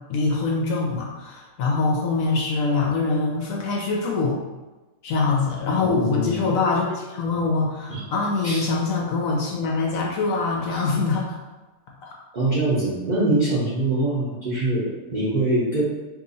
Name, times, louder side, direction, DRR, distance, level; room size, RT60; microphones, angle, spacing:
voice 1, 0.1-4.4 5.0-11.4, left 3 dB, 70° left, -1 dB, 0.9 m, -24 dB
voice 2, 5.8-6.4 7.9-8.0 8.4-8.7 10.7-10.8 12.3-15.8, right 2 dB, 50° right, -8 dB, 0.5 m, -24 dB
2.8 x 2.6 x 3.9 m, 1.2 s
omnidirectional pair, 1.7 m